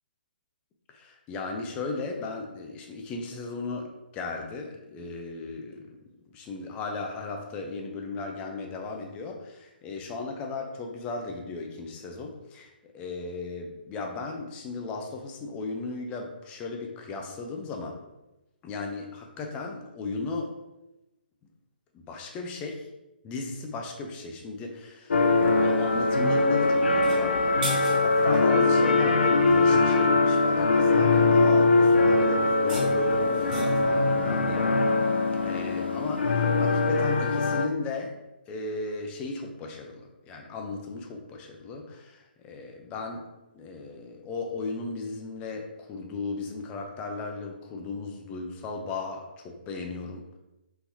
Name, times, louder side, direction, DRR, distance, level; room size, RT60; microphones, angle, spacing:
voice 1, 0.9-6.0 6.3-18.0 18.6-20.5 22.1-22.9 23.2-25.0 25.6-34.7 35.4-38.1 38.5-43.3 43.5-50.2, left 3 dB, 20° left, 2 dB, 0.5 m, -36 dB
sound 1, 25.1-37.7, left 3 dB, 80° left, 0.4 m, -22 dB
sound 2, 26.9-28.4 32.4-33.9, right 2 dB, 50° right, 1.5 m, -38 dB
3.8 x 2.8 x 2.7 m, 0.98 s
hypercardioid pair, 140°, 6 cm